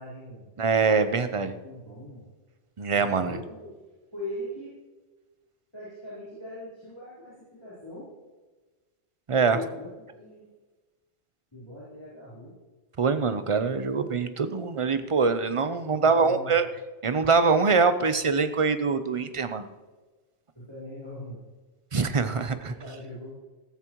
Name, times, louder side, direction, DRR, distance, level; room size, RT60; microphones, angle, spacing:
voice 1, 0.0-0.5 1.6-2.3 2.9-3.7 4.1-4.8 5.7-8.1 9.4-10.5 11.5-12.6 15.8-16.6 20.5-21.4 22.5-23.3, left 1 dB, 25° left, -10 dB, 4.0 m, -41 dB
voice 2, 0.6-1.5 2.8-3.4 9.3-9.6 13.0-16.7 17.0-19.7 21.9-22.7, right 4 dB, 35° right, 10 dB, 0.6 m, -24 dB
14.5 x 14.0 x 3.0 m, 1.3 s
omnidirectional pair, 1.2 m